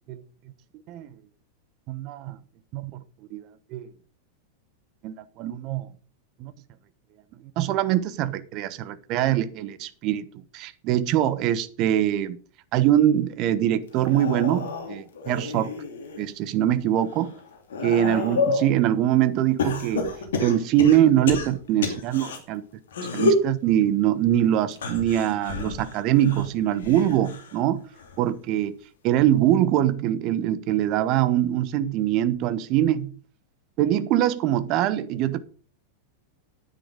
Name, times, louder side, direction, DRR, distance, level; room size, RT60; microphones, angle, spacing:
voice 1, 1.9-2.4 2.7-3.0 3.3-3.4 3.7-3.9 5.0-5.9 6.4-6.5 7.6-10.3 10.5-12.4 12.7-15.7 16.2-17.3 17.8-20.1 20.4-22.6 23.1-27.8 28.2-28.8 29.0-33.1 33.8-35.4, right 11 dB, 40° right, 1.1 m, -23 dB
sound 1, 13.9-16.3 16.8-18.7 19.6-22.4 22.9-23.5 24.7-27.6 27.9-28.4 29.5-29.6, left 3 dB, 60° left, 2.7 m, -29 dB
10.5 x 9.2 x 5.2 m
figure-of-eight pair, 90°, 0 cm